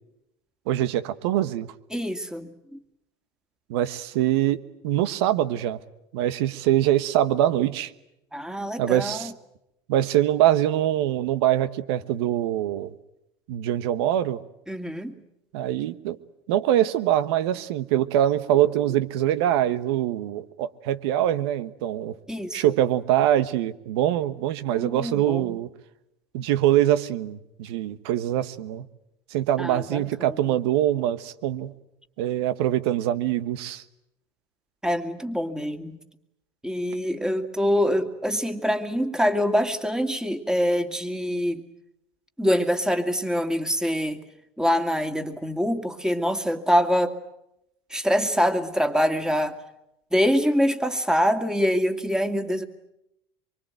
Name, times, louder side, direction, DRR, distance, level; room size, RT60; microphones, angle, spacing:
voice 1, 0.7-1.7 3.7-5.8 6.1-7.9 8.8-9.3 9.9-12.9 13.5-14.4 15.5-16.2 16.5-22.2 22.5-25.7 26.3-28.9 29.3-31.7 32.2-33.8, right 12 dB, 75° right, 14 dB, 1.2 m, -23 dB
voice 2, 1.9-2.8 8.3-9.3 14.7-15.2 22.3-22.7 24.7-25.6 29.6-30.6 34.8-36.0 36.6-41.6 42.4-44.2 44.6-47.2 47.9-49.6 50.1-52.6, equal, 5° right, 7 dB, 2.3 m, -25 dB
24.5 x 24.0 x 9.2 m, 0.85 s
hypercardioid pair, 85°, 14 cm